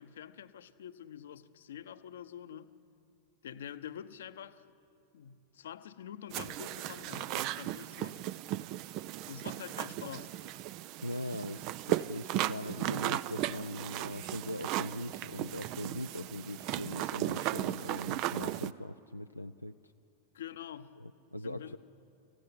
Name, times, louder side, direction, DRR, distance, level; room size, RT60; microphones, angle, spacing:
voice 1, 0.0-2.8 3.4-4.7 5.1-8.3 9.3-10.5 20.3-21.0 21.4-21.8, left 9 dB, 60° left, 0.9 m, -46 dB
sound 1, 6.3-18.7, right 14 dB, 40° right, 0.5 m, -36 dB
voice 2, 11.0-19.8 21.0-21.8, left 1 dB, 90° left, 0.4 m, -41 dB
26.0 x 15.5 x 10.0 m
figure-of-eight pair, 90°, 0 cm